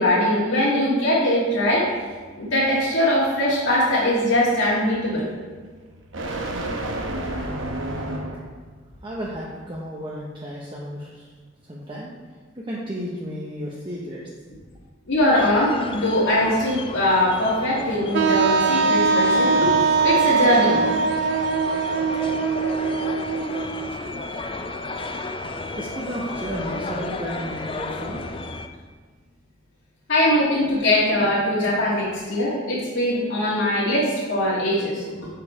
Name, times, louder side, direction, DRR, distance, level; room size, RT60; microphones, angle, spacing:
voice 1, 0.0-1.9 2.4-5.2 15.1-19.7 20.0-20.8 30.1-35.3, left 1 dB, 80° left, -8 dB, 1.7 m, -21 dB
sound 1, 1.6-8.6, right 1 dB, 80° right, 0.9 m, -33 dB
voice 2, 9.0-11.3 11.6-12.1 12.5-14.2 25.2-25.3 25.8-28.3, equal, 25° right, -4 dB, 0.8 m, -33 dB
sound 2, 15.3-28.7, left 3 dB, 25° left, 0.4 m, -33 dB
Wind instrument woodwind instrument, 18.1-23.9, right 4 dB, 60° right, 0.3 m, -21 dB
7.0 x 4.7 x 4.8 m, 1.5 s
head